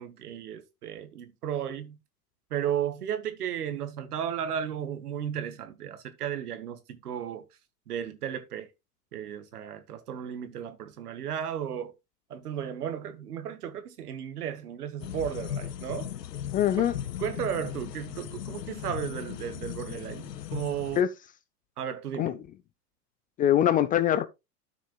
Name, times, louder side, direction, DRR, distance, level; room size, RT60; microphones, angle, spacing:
voice 1, 0.0-2.0 2.5-7.5 7.9-8.7 9.1-11.9 12.3-16.1 16.8-16.9 17.2-21.1 21.8-22.4, right 9 dB, 75° right, 1.6 m, -34 dB
sound 1, 15.0-21.0, left 10 dB, 90° left, 0.7 m, -37 dB
voice 2, 16.5-16.9 21.0-21.1 22.2-22.3 23.4-24.3, left 11 dB, 20° left, 0.4 m, -23 dB
12.5 x 6.4 x 2.3 m
hypercardioid pair, 95°, 47 cm